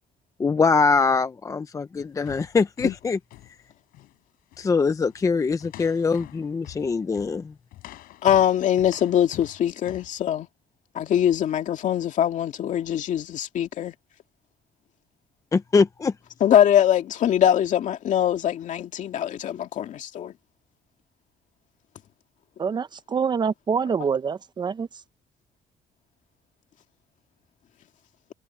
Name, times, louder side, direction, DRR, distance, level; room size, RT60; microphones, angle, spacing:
voice 1, 0.4-3.2 4.6-7.5 15.5-16.1, left 4 dB, 20° left, 0.6 m, -23 dB
sound 1, 2.0-4.2 4.5-4.7 5.1-5.3 5.6-10.2, left 15 dB, 85° left, 7.4 m, -46 dB
voice 2, 8.2-10.5 10.9-13.9 16.4-20.3, left 10 dB, 60° left, 2.2 m, -22 dB
voice 3, 22.6-24.9, right 6 dB, 30° right, 0.7 m, -26 dB
cardioid pair, 130°, 15 cm